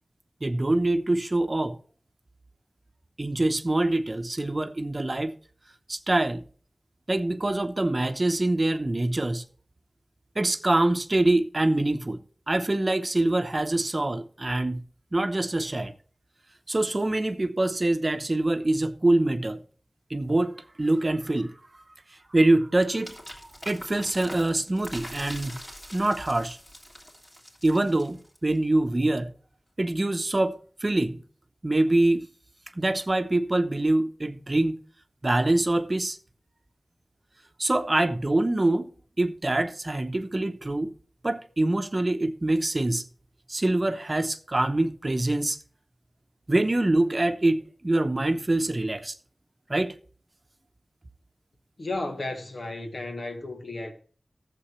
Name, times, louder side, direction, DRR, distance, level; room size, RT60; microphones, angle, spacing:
voice 1, 0.4-1.8 3.2-5.3 5.9-6.4 7.1-9.4 10.3-12.2 12.5-14.8 15.1-15.9 16.7-19.6 20.1-21.5 22.1-23.2 23.4-25.6 25.9-26.6 27.6-29.3 29.8-31.2 31.6-32.3 32.7-34.8 35.2-36.2 37.6-38.9 39.2-40.9 41.2-43.0 43.5-45.6 46.5-49.2 49.7-50.0, right 2 dB, 40° right, 0.8 m, -25 dB
sound 1, 23.0-28.6, equal, 25° left, 3.1 m, -43 dB
voice 2, 51.8-53.9, left 2 dB, 75° left, 1.6 m, -33 dB
14.0 x 7.6 x 3.1 m
wide cardioid pair, 65°, 0 cm